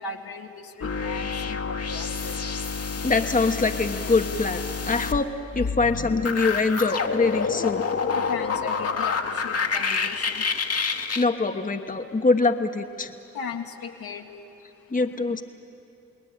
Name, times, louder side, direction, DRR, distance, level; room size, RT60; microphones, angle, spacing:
voice 1, 0.0-2.4 8.0-10.4 13.3-14.3, left 5 dB, 65° left, 2 dB, 2.0 m, -37 dB
sound 1, 0.8-11.2, left 5 dB, 40° left, 1.5 m, -28 dB
voice 2, 3.0-5.3 5.5-7.9 11.1-13.1 14.9-15.4, left 3 dB, 20° left, 6 dB, 1.3 m, -24 dB
29.0 x 19.5 x 8.8 m, 3.0 s
hypercardioid pair, 45°, 38 cm